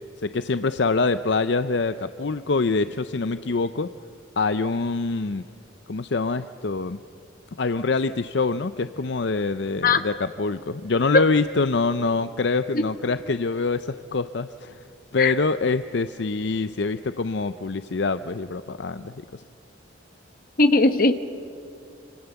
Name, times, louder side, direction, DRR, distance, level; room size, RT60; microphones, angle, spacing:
voice 1, 0.2-3.9 4.4-5.4 5.9-7.0 7.6-14.8 15.1-19.4, left 3 dB, 65° left, 11 dB, 0.6 m, -25 dB
voice 2, 20.6-21.1, left 3 dB, 45° left, 9 dB, 1.2 m, -18 dB
26.5 x 26.0 x 7.0 m, 2.5 s
head